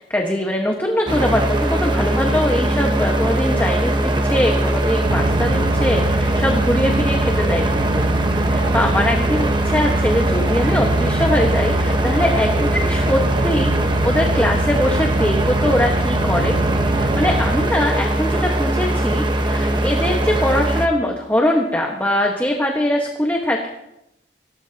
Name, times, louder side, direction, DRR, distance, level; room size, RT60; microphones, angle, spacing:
voice 1, 0.0-8.0 8.4-13.7 14.0-16.6 16.9-23.7, left 1 dB, 10° left, 0 dB, 1.4 m, -22 dB
sound 1, 1.1-20.9, right 1 dB, 25° right, 1.2 m, -20 dB
sound 2, 5.0-17.7, right 2 dB, 80° right, 0.9 m, -26 dB
25.5 x 18.5 x 2.9 m, 0.87 s
head